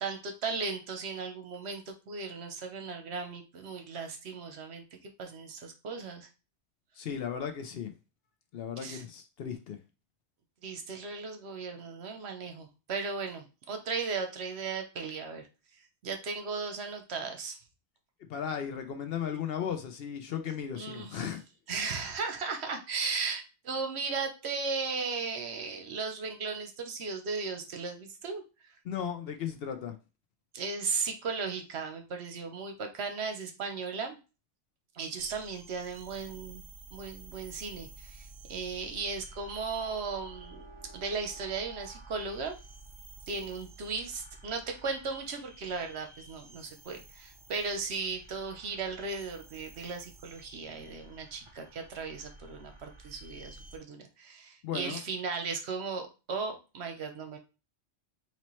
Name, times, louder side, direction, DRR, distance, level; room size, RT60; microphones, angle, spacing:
voice 1, 0.0-6.3 8.8-9.0 10.6-15.4 15.8-17.6 20.7-21.3 21.7-28.7 30.5-34.2 34.9-36.6 36.9-40.6 40.9-42.5 43.3-57.4, right 4 dB, 65° right, 1.0 m, -36 dB
voice 2, 7.0-7.9 8.5-9.8 18.3-21.4 28.9-29.9 54.6-55.0, left 8 dB, 65° left, 0.7 m, -36 dB
sound 1, 35.2-53.8, right 3 dB, 35° right, 0.6 m, -52 dB
4.2 x 3.0 x 3.1 m
omnidirectional pair, 1.2 m